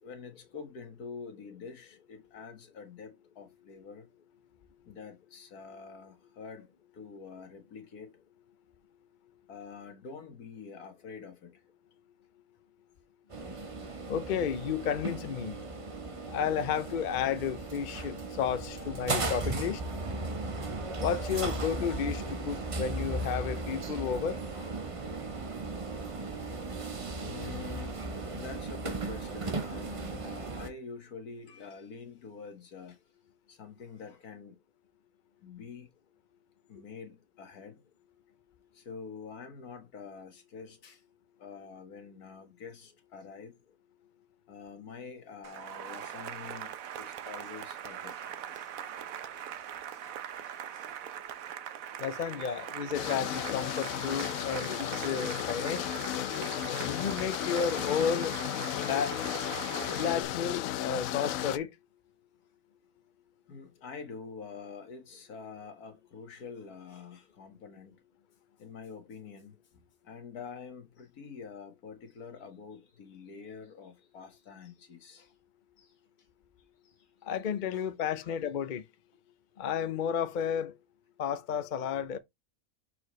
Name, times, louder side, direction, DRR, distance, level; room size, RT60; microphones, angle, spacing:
voice 1, 0.0-4.1 4.9-6.7 6.9-8.1 9.5-11.6 13.9-14.0 15.8-15.9 18.7-19.5 21.4-21.5 22.6-22.8 24.5-24.9 27.2-28.0 28.3-33.0 33.5-34.6 35.4-35.9 36.7-37.8 38.7-41.0 41.4-43.6 44.5-48.7 49.6-50.2 50.4-50.9 52.5-52.6 56.2-56.6 63.5-68.0 68.6-69.6 70.0-75.3 75.8-75.9 76.8-77.1 77.7-77.9 78.2-78.4, left 5 dB, 90° left, 2.0 m, -47 dB
sound 1, 13.3-30.7, right 3 dB, 30° right, 0.7 m, -36 dB
voice 2, 14.1-15.5 16.3-19.8 21.0-24.4 52.0-55.9 56.8-58.4 58.8-59.2 59.9-61.7 77.2-78.8 79.6-80.7 81.2-82.2, left 7 dB, 45° left, 0.6 m, -32 dB
Cheering / Applause, 45.4-60.2, right 9 dB, 70° right, 1.1 m, -41 dB
sound 2, 52.9-61.6, left 12 dB, 70° left, 1.0 m, -34 dB
6.4 x 4.8 x 3.1 m
omnidirectional pair, 1.5 m